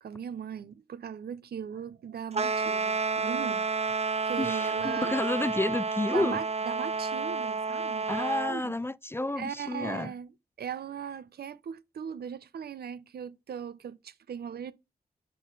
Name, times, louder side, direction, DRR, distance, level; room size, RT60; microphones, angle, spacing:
voice 1, 0.0-5.2 6.1-8.2 8.5-8.7 9.4-10.3 10.6-14.7, right 7 dB, 75° right, 0.7 m, -39 dB
sound 1, 2.3-8.6, right 4 dB, 40° right, 0.7 m, -30 dB
voice 2, 4.4-6.4 8.1-10.1, left 2 dB, 15° left, 0.4 m, -30 dB
5.3 x 3.9 x 5.5 m
cardioid pair, 50°, 17 cm